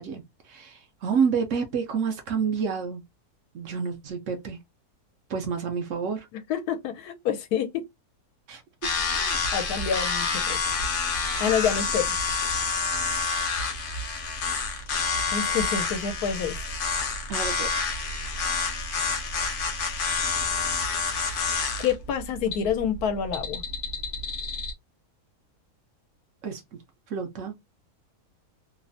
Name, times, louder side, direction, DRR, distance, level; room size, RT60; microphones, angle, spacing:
voice 1, 0.0-3.0 3.5-4.6 5.3-6.3 8.5-8.6 10.5-10.6 17.3-17.7 26.4-26.8 27.1-27.5, right 6 dB, 65° right, 0.9 m, -29 dB
voice 2, 6.5-7.8 9.2-10.6 11.4-12.2 15.3-16.6 21.8-23.6, left 7 dB, 85° left, 1.1 m, -27 dB
sound 1, 8.8-24.7, left 4 dB, 60° left, 0.5 m, -28 dB
3.0 x 2.0 x 2.5 m
omnidirectional pair, 1.6 m